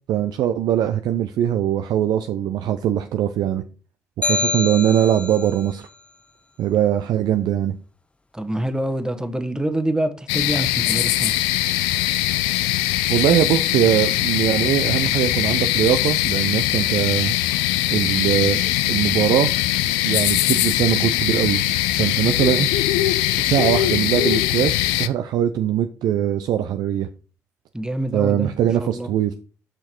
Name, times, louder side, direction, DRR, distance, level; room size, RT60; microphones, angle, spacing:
voice 1, 0.1-3.6 4.2-5.8 6.6-7.8 13.1-17.4 17.9-19.5 20.0-21.6 22.0-22.7 23.3-27.1 28.1-29.3, right 10 dB, 65° right, 0.5 m, -21 dB
sound 1, 4.2-5.6, left 2 dB, 15° left, 0.4 m, -25 dB
voice 2, 8.3-11.3 27.7-28.5 28.8-29.1, right 1 dB, 10° right, 1.2 m, -26 dB
sound 2, 10.3-25.1, left 15 dB, 80° left, 0.4 m, -21 dB
6.8 x 5.8 x 4.4 m
hypercardioid pair, 45°, 8 cm